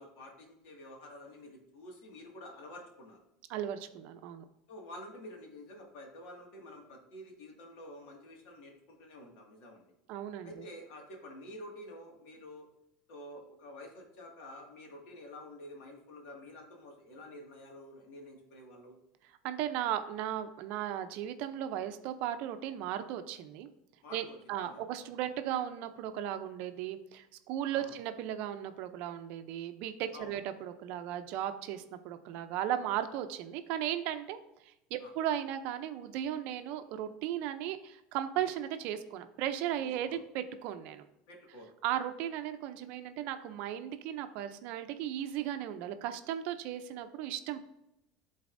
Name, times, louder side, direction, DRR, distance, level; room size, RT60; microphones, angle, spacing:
voice 1, 0.0-3.2 4.7-9.9 10.4-12.7 13.1-19.0 24.0-24.8 27.7-27.9 30.1-30.4 35.0-35.1 39.8-40.2 41.3-41.7, left 1 dB, 65° left, 0 dB, 1.9 m, -49 dB
voice 2, 3.5-4.4 10.1-10.7 19.4-23.7 24.1-41.0 41.8-47.6, right 11 dB, 60° right, 9 dB, 0.6 m, -36 dB
12.0 x 4.0 x 2.6 m, 0.88 s
supercardioid pair, 140°, 3 cm